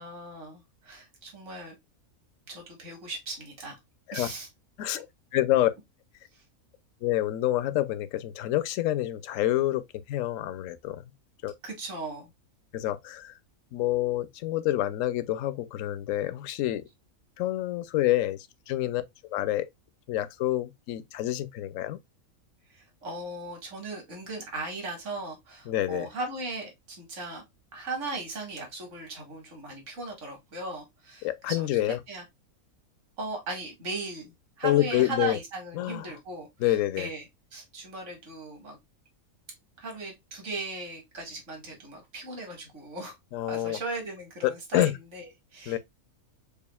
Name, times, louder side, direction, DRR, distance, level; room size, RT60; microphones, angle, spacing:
voice 1, 0.0-1.8 2.5-3.8 4.1-4.5 4.9-5.0 11.6-12.3 22.7-27.4 27.7-32.2 33.2-37.3 37.5-38.8 39.8-43.1 43.5-45.8, right 2 dB, 55° right, 2.1 m, -38 dB
voice 2, 5.3-5.7 7.0-11.1 11.4-11.5 12.7-13.3 13.7-16.9 17.4-19.0 19.3-19.7 20.1-22.0 25.7-26.1 31.2-32.0 34.6-35.4 35.7-36.1 36.6-37.1 43.3-43.8 44.4-44.9 45.7-45.8, left 14 dB, 70° left, 0.9 m, -27 dB
6.9 x 2.5 x 2.2 m
omnidirectional pair, 1.5 m